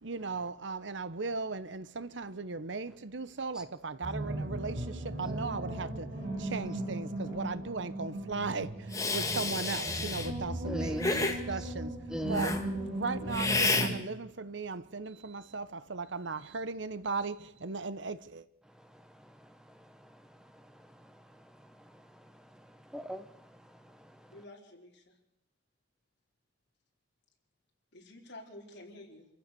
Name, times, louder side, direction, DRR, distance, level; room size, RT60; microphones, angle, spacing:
voice 1, 0.0-12.6 12.9-18.5, right 4 dB, 70° right, 0.9 m, -37 dB
sound 1, 4.0-14.0, right 1 dB, 50° right, 5.7 m, -37 dB
Hiss, 8.9-10.3 11.0-11.4 12.3-12.6 13.3-13.9, left 3 dB, 15° left, 1.8 m, -30 dB
voice 2, 10.7-11.4 12.1-12.6 18.8-24.4, equal, 5° right, 0.8 m, -43 dB
voice 3, 24.3-25.1 27.9-29.3, left 1 dB, 60° left, 4.6 m, -50 dB
27.0 x 15.5 x 6.9 m
head